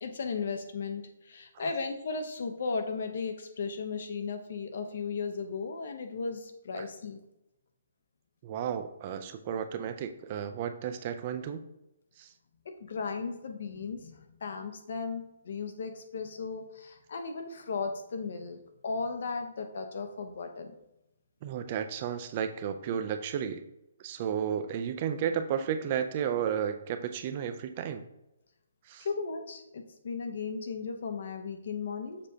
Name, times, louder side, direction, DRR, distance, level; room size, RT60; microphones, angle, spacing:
voice 1, 0.0-7.2 12.6-20.8 29.0-32.2, left 4 dB, 60° left, 6 dB, 0.9 m, -36 dB
voice 2, 8.4-11.6 12.2-12.3 21.4-23.6 24.0-28.1 28.9-29.1, right 8 dB, 35° right, 9 dB, 0.5 m, -33 dB
6.9 x 4.8 x 2.8 m, 0.91 s
hypercardioid pair, 160°, 0 cm